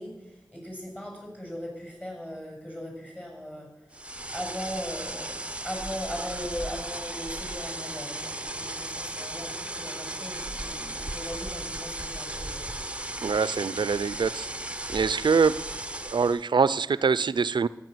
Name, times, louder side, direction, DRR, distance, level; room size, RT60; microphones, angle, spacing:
voice 1, 0.0-12.8, equal, 20° left, 0 dB, 6.8 m, -39 dB
sound 1, 3.9-16.5, right 1 dB, 15° right, 0.6 m, -36 dB
voice 2, 13.2-14.5 14.9-15.6 16.1-17.7, right 5 dB, 85° right, 17 dB, 0.4 m, -24 dB
13.5 x 9.5 x 7.9 m, 1.0 s
wide cardioid pair, 55°, 8 cm